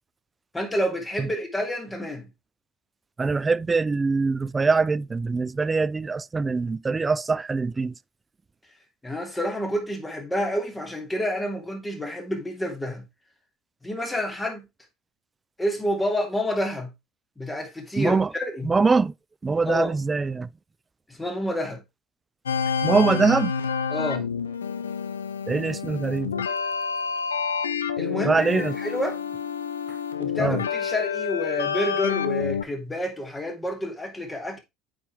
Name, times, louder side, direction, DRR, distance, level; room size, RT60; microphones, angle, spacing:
voice 1, 0.5-2.3 9.0-13.0 13.8-14.7 15.6-16.9 17.4-18.7 19.6-20.0 21.1-21.8 23.9-24.3 28.0-29.2 30.2-34.6, equal, 15° left, 2.6 m, -29 dB
voice 2, 3.2-7.9 18.0-18.3 18.6-19.1 19.4-20.5 22.8-23.5 25.5-26.3 28.2-28.8 30.4-30.6, right 4 dB, 20° right, 0.3 m, -23 dB
sound 1, 22.5-32.6, left 6 dB, 80° left, 0.6 m, -28 dB
8.3 x 5.2 x 3.4 m
figure-of-eight pair, 65°, 0 cm